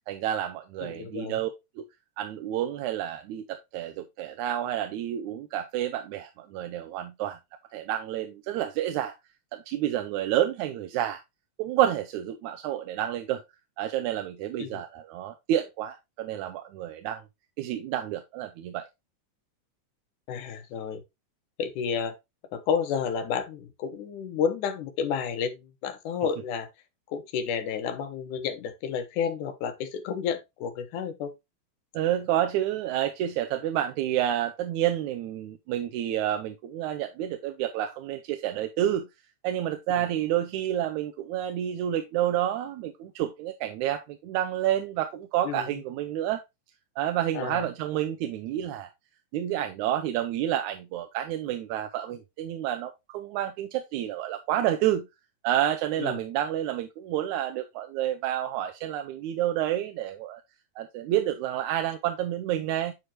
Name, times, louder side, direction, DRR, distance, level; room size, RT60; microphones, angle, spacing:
voice 1, 0.1-1.5 1.8-1.9 2.2-7.4 7.7-9.1 9.5-11.2 11.6-13.4 13.8-17.2 17.6-18.9 31.9-39.1 39.4-46.4 47.0-48.9 49.3-55.1 55.4-60.4 60.8-62.9, right 11 dB, 80° right, 2.1 m, -29 dB
voice 2, 0.8-1.4 14.6-14.8 20.3-21.0 21.6-22.2 22.5-26.7 27.1-31.3 40.0-40.1 45.4-45.7 47.3-47.7 56.0-56.2, left 7 dB, 85° left, 2.6 m, -31 dB
9.8 x 4.7 x 2.8 m
omnidirectional pair, 3.5 m